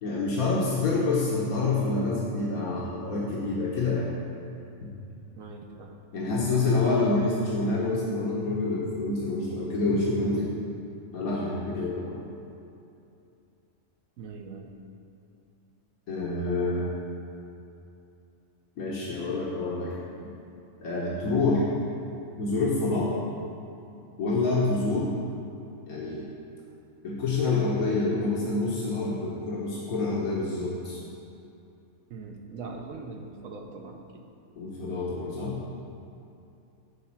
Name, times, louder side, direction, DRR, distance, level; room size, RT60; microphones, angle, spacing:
voice 1, 0.0-4.1 4.8-4.9 6.1-10.5 11.1-12.3 16.1-16.9 18.8-20.0 20.8-21.6 22.4-23.1 24.2-25.1 25.9-26.3 27.0-31.0 34.6-35.5, left 3 dB, 85° left, -6 dB, 1.6 m, -27 dB
voice 2, 5.4-5.9 14.2-14.7 32.1-34.2, right 4 dB, 75° right, 2 dB, 1.3 m, -41 dB
11.5 x 4.3 x 7.2 m, 2.7 s
omnidirectional pair, 1.5 m